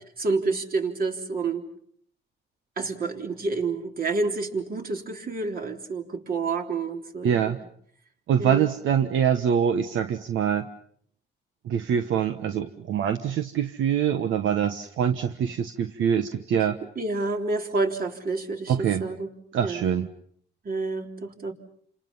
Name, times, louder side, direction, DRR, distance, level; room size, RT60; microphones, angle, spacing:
voice 1, 0.2-1.6 2.8-7.5 8.4-8.7 17.0-19.3 19.6-19.9 20.6-21.5, right 3 dB, 45° right, 3 dB, 3.8 m, -29 dB
voice 2, 7.2-7.6 8.3-10.6 11.6-16.8 18.7-19.0 19.5-20.1, right 8 dB, 75° right, 8 dB, 1.3 m, -24 dB
30.0 x 27.5 x 5.6 m, 0.63 s
cardioid pair, 90°, 20 cm